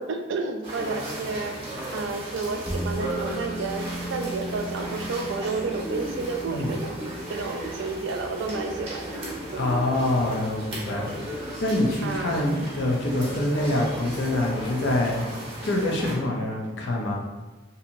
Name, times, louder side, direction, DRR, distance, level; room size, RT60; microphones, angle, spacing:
voice 1, 0.0-1.6 1.9-6.9 7.3-9.1 9.5-9.6 12.0-12.4, right 3 dB, 70° right, 5 dB, 0.3 m, -31 dB
sound 1, 0.6-16.1, right 1 dB, 30° right, 0.7 m, -36 dB
sound 2, 2.7-15.2, right 1 dB, 10° left, 0.5 m, -40 dB
voice 2, 9.6-11.2 11.6-15.2 15.6-17.2, left 1 dB, 60° left, 0 dB, 0.5 m, -25 dB
2.7 x 2.7 x 2.5 m, 1.2 s
head